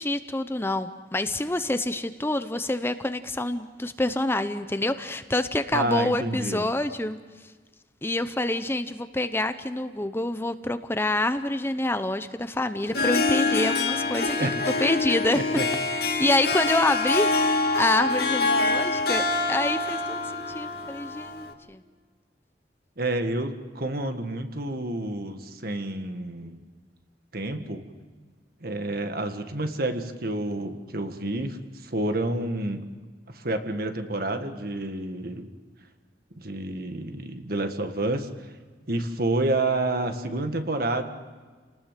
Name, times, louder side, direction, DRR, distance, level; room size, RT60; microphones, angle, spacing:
voice 1, 0.0-7.2 8.0-14.5 14.8-15.4 15.9-19.2 19.5-21.8, left 2 dB, 15° left, 10 dB, 0.7 m, -27 dB
voice 2, 5.7-6.7 14.4-14.5 15.3-15.6 23.0-26.6 27.3-27.8 28.6-32.9 33.3-35.5 36.4-38.3 38.9-41.1, right 2 dB, 55° right, 7 dB, 1.7 m, -29 dB
Harp, 12.8-21.5, left 3 dB, 60° left, 2.0 m, -25 dB
29.5 x 19.0 x 7.6 m, 1.5 s
head